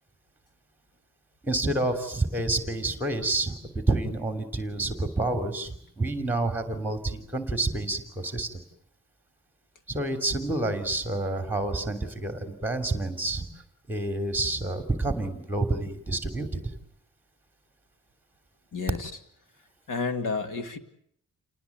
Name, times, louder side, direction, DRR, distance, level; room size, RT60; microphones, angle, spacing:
voice 1, 1.4-8.6 9.9-13.5 13.9-16.5, right 2 dB, 5° right, 8 dB, 3.1 m, -28 dB
voice 2, 18.7-19.1 19.9-20.8, left 4 dB, 80° left, 8 dB, 2.5 m, -30 dB
29.5 x 19.5 x 9.5 m, 0.69 s
wide cardioid pair, 180°, 31 cm